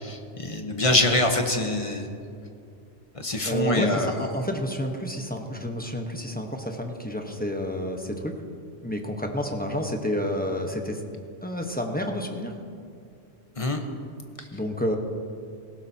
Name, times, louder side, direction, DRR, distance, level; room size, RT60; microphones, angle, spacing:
voice 1, 0.0-2.1 3.1-4.1 13.6-13.8, left 2 dB, 30° left, 4 dB, 1.0 m, -24 dB
voice 2, 3.4-8.4 8.8-11.0 11.4-12.5 14.5-15.0, equal, 10° left, 3 dB, 0.9 m, -29 dB
18.5 x 16.0 x 2.8 m, 2.4 s
omnidirectional pair, 1.2 m